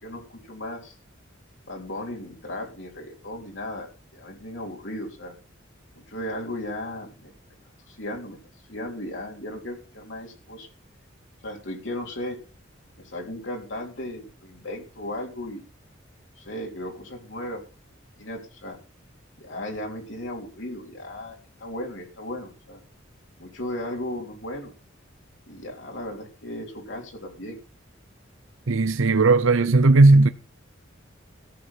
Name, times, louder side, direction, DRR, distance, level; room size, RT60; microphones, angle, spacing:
voice 1, 0.0-1.0 1.7-5.3 6.0-7.3 7.8-8.4 8.7-10.7 11.4-12.4 13.0-15.6 16.4-17.6 18.2-18.8 19.4-22.8 23.4-24.7 25.5-27.6, left 1 dB, 65° left, 3.7 m, -36 dB
voice 2, 28.7-30.3, right 3 dB, 80° right, 0.7 m, -16 dB
14.5 x 8.0 x 5.8 m
head